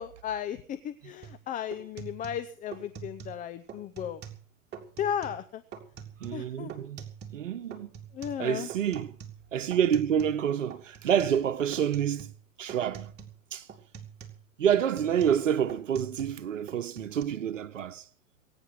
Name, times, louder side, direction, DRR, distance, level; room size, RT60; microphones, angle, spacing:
voice 1, 0.0-4.2 5.0-5.6 6.3-6.7 8.1-8.7, left 9 dB, 20° left, 0.8 m, -35 dB
sound 1, 1.2-1.4 1.7-3.4 3.7-4.4 4.7-5.4 5.7-7.4 7.7-10.4 10.7-11.4 11.7-12.4 12.7-13.4 13.7-16.4 16.7-17.2, right 7 dB, 25° right, 3.5 m, -45 dB
voice 2, 6.2-7.0 7.3-7.9 8.4-9.1 9.5-12.3 12.6-13.1 13.5-13.7 14.6-18.1, right 9 dB, 65° right, 1.3 m, -28 dB
23.0 x 10.0 x 6.2 m
figure-of-eight pair, 105°, 41 cm